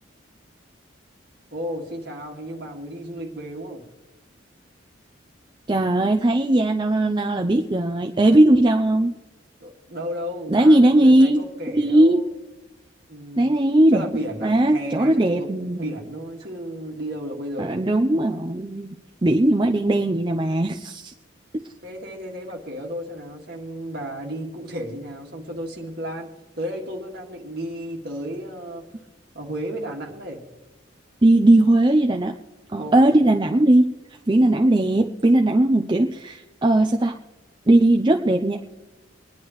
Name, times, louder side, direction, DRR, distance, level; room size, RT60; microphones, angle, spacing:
voice 1, 1.5-3.9 9.6-12.3 13.1-13.6 13.9-17.7 21.8-26.3 26.6-28.8 29.3-30.4 32.8-33.1, equal, 55° right, 1 dB, 2.0 m, -33 dB
voice 2, 5.7-9.1 10.5-11.4 11.7-12.2 13.4-14.1 14.4-15.8 17.6-19.0 19.2-21.1 21.5-21.6 31.2-32.3 32.7-33.9 34.3-37.2 37.7-38.6, right 1 dB, 25° right, 3 dB, 0.5 m, -18 dB
24.0 x 10.5 x 3.1 m, 1.1 s
head